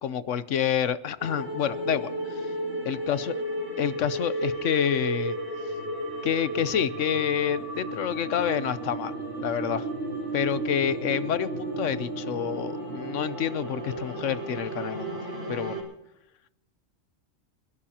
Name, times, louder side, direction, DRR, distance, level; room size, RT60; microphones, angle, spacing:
voice 1, 0.0-2.5 2.9-3.3 3.8-5.4 6.2-9.1 9.4-9.9 10.3-15.2 15.5-15.8, left 9 dB, 75° left, 14 dB, 1.1 m, -28 dB
sound 1, 1.2-15.8, right 1 dB, 70° right, 4.3 m, -33 dB
28.5 x 11.5 x 2.9 m, 0.85 s
omnidirectional pair, 1.3 m